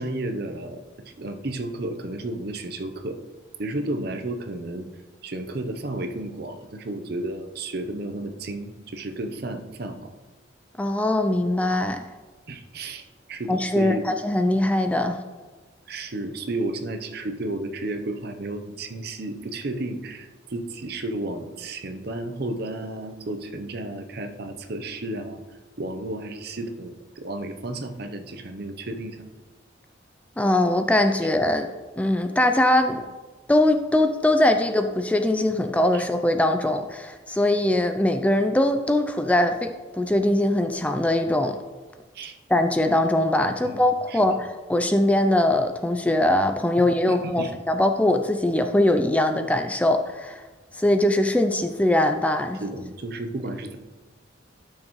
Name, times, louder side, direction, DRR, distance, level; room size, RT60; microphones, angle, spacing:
voice 1, 0.0-3.2 3.6-4.9 5.2-10.1 12.5-14.1 15.9-25.4 25.8-29.2 35.9-36.0 42.1-42.4 43.6-43.8 44.1-44.4 46.8-47.5 52.6-53.8, right 2 dB, 55° right, 7 dB, 0.7 m, -32 dB
voice 2, 10.8-12.0 13.5-15.2 30.4-31.7 32.0-33.0 33.5-41.6 42.5-50.4 50.7-52.6, left 1 dB, 5° left, 7 dB, 0.3 m, -21 dB
12.5 x 6.3 x 3.1 m, 1.3 s
head